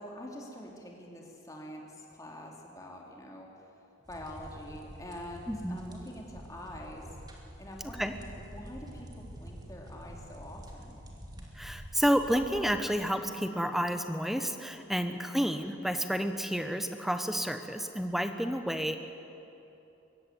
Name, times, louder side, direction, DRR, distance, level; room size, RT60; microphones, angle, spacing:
voice 1, 0.0-3.5 4.1-7.1 7.6-11.0 15.0-15.4, left 1 dB, 20° left, -1 dB, 3.1 m, -46 dB
sound 1, 4.0-12.8, equal, 20° right, 2.4 m, -47 dB
voice 2, 5.5-5.8 8.0-8.1 11.6-19.0, equal, ahead, 8 dB, 1.0 m, -30 dB
22.5 x 15.5 x 9.4 m, 2.9 s
head